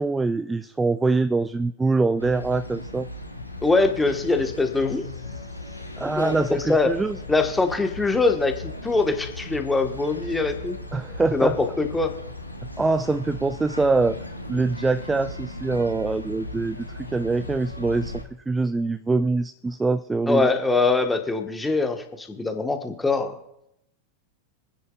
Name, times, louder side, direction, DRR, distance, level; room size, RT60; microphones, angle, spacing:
voice 1, 0.0-3.1 6.0-7.2 10.9-11.6 12.8-14.2 14.5-18.1 18.5-20.5, right 3 dB, 10° right, 13 dB, 0.3 m, -24 dB
sound 1, 2.2-18.2, left 2 dB, 90° left, 1.3 m, -37 dB
voice 2, 3.6-5.1 5.3-5.5 6.2-6.9 7.3-10.8 11.3-12.1 20.3-23.3, left 3 dB, 10° left, 5 dB, 1.4 m, -23 dB
26.0 x 9.8 x 2.4 m, 0.80 s
figure-of-eight pair, 90°, 0 cm